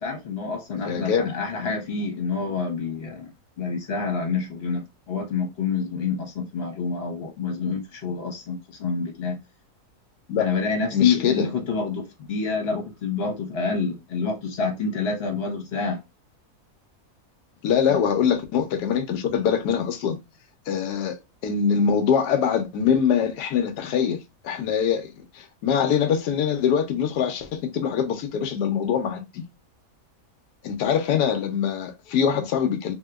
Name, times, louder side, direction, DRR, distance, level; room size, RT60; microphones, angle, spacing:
voice 1, 0.0-3.3 3.6-9.4 10.4-16.0 17.9-18.0, left 5 dB, 45° left, 1.3 m, -27 dB
voice 2, 0.8-1.3 10.3-10.5 10.9-11.5 17.6-20.2 20.7-29.4 30.6-32.9, left 7 dB, 90° left, 1.2 m, -23 dB
3.4 x 2.8 x 2.3 m
omnidirectional pair, 1.7 m